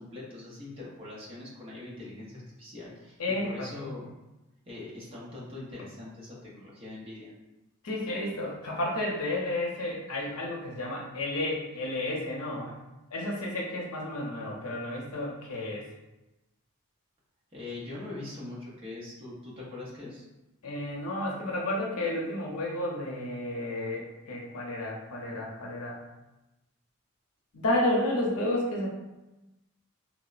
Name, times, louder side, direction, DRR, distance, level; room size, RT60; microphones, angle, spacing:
voice 1, 0.0-4.1 4.7-7.3 17.5-20.3, left 2 dB, 25° right, -6 dB, 0.6 m, -42 dB
voice 2, 3.2-3.9 7.8-12.7 13.1-15.9 20.6-26.0 27.5-28.9, left 1 dB, 85° left, -2 dB, 0.6 m, -31 dB
3.3 x 2.0 x 2.4 m, 1.0 s
head